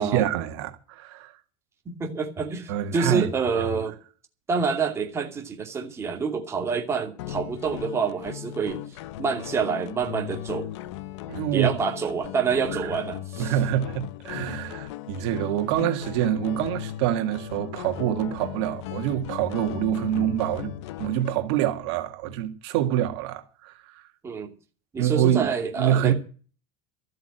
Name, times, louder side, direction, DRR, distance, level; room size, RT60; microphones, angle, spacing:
voice 1, 0.0-1.4 2.7-3.3 11.3-11.7 12.7-13.0 13.4-20.7 21.0-24.1 25.0-25.5 25.8-26.1, right 11 dB, 75° right, 1.9 m, -26 dB
voice 2, 1.9-4.0 4.5-8.8 9.2-10.7 11.5-13.5 24.2-24.5 24.9-26.1, right 5 dB, 20° right, 2.6 m, -27 dB
sound 1, 7.2-21.3, left 13 dB, 85° left, 0.8 m, -37 dB
13.5 x 7.8 x 8.9 m
cardioid pair, 155°, 14 cm